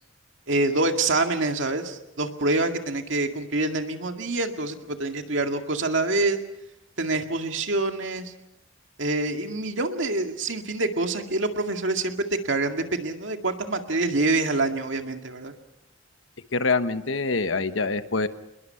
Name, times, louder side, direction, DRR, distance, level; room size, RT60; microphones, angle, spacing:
voice 1, 0.5-6.4 7.0-8.3 9.0-15.5, right 2 dB, 70° right, 5 dB, 2.1 m, -26 dB
voice 2, 16.5-18.3, left 3 dB, 75° left, 10 dB, 1.2 m, -25 dB
27.5 x 21.5 x 5.8 m, 0.87 s
head